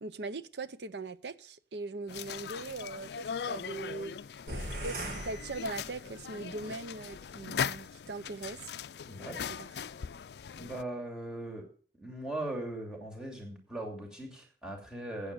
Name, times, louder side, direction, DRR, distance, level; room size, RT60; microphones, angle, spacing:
voice 1, 0.0-4.1 4.8-8.7 9.5-9.7, right 3 dB, 75° right, 0.7 m, -40 dB
sound 1, 2.1-10.8, left 7 dB, 70° left, 0.4 m, -40 dB
sound 2, 4.5-6.3, right 1 dB, 55° right, 4.4 m, -40 dB
voice 2, 9.1-9.4 10.6-11.7 11.9-15.3, right 1 dB, 5° right, 2.7 m, -39 dB
9.0 x 7.6 x 6.7 m
head